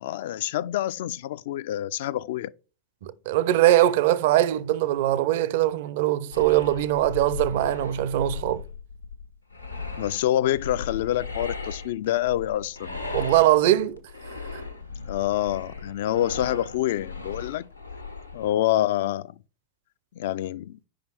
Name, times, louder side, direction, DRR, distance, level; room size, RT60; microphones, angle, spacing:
voice 1, 0.0-2.5 10.0-13.0 15.0-17.7 18.3-19.3 20.2-20.8, left 13 dB, 55° left, 0.3 m, -27 dB
voice 2, 3.0-8.6 13.1-14.0, right 14 dB, 50° right, 0.5 m, -21 dB
sound 1, 6.3-18.5, left 4 dB, 85° left, 1.0 m, -37 dB
5.3 x 4.9 x 5.6 m
figure-of-eight pair, 90°, 0 cm